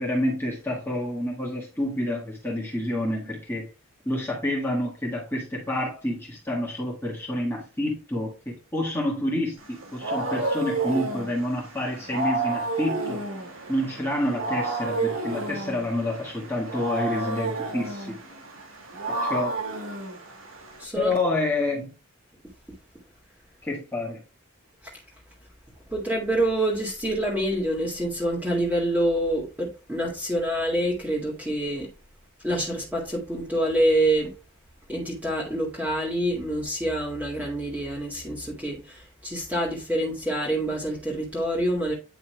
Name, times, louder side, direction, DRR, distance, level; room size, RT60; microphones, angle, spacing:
voice 1, 0.0-3.7 4.1-13.2 13.7-18.2 19.1-19.6 21.0-21.9 23.6-24.2, left 1 dB, 10° left, 1.7 m, -28 dB
Wild animals, 9.6-20.8, right 3 dB, 70° right, 2.0 m, -31 dB
voice 2, 20.8-21.1 24.8-24.9 25.9-31.9 32.4-34.3 34.9-41.9, right 1 dB, 10° right, 2.1 m, -26 dB
9.5 x 5.6 x 2.2 m
head